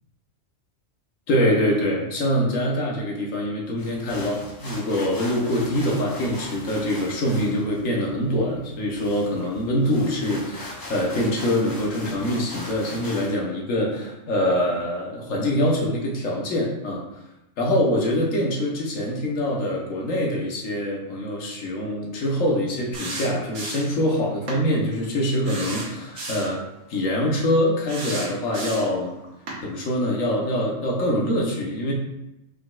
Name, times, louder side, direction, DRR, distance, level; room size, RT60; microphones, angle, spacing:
voice 1, 1.3-17.2 17.6-26.6 26.9-29.1 29.6-31.9, left 1 dB, 85° left, -2 dB, 1.3 m, -24 dB
sound 1, 3.8-13.4, left 1 dB, 20° left, 0.7 m, -40 dB
sound 2, 22.9-24.0 24.5-24.6 25.4-26.6 27.9-29.0 29.5-29.6, right 2 dB, 85° right, 1.4 m, -33 dB
4.9 x 4.0 x 2.3 m, 0.93 s
omnidirectional pair, 1.3 m